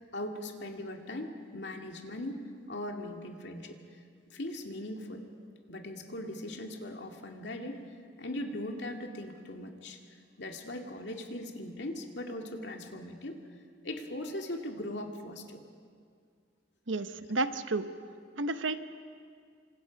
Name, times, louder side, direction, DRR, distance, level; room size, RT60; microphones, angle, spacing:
voice 1, 0.0-4.0 4.3-5.2 5.7-7.8 8.2-10.0 10.4-13.4 13.8-15.6, left 1 dB, 65° left, 3 dB, 2.3 m, -39 dB
voice 2, 16.9-17.9 18.4-18.8, right 2 dB, 85° right, 10 dB, 1.0 m, -31 dB
28.0 x 25.5 x 5.3 m, 2.2 s
head